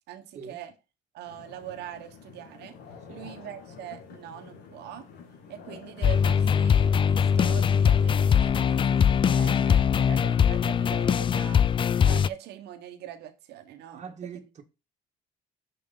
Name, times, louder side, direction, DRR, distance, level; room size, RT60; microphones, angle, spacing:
voice 1, 0.1-0.7 1.1-2.7 3.1-5.0 5.5-11.6 12.0-14.1, right 11 dB, 80° right, 1.4 m, -42 dB
sound 1, 1.3-9.8, left 6 dB, 80° left, 2.1 m, -48 dB
sound 2, 6.0-12.3, left 7 dB, 30° left, 0.3 m, -22 dB
voice 2, 13.9-14.6, right 6 dB, 45° right, 1.6 m, -43 dB
6.9 x 5.3 x 4.0 m
cardioid pair, 110°, 17 cm